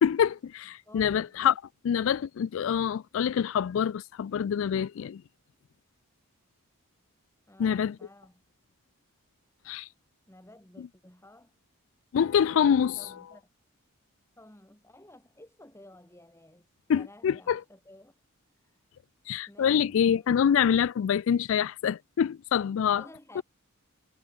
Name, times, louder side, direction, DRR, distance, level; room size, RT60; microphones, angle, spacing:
voice 1, 0.0-1.5 1.8-5.2 7.6-8.0 9.7-9.9 10.8-10.9 12.1-13.0 16.9-17.6 19.3-23.0, left 8 dB, 65° left, 0.3 m, -25 dB
voice 2, 0.9-1.3 7.5-8.4 10.3-11.6 13.0-13.5 14.4-18.1 18.6-18.8 19.5-20.3 23.0-23.4, left 1 dB, 10° left, 2.5 m, -53 dB
head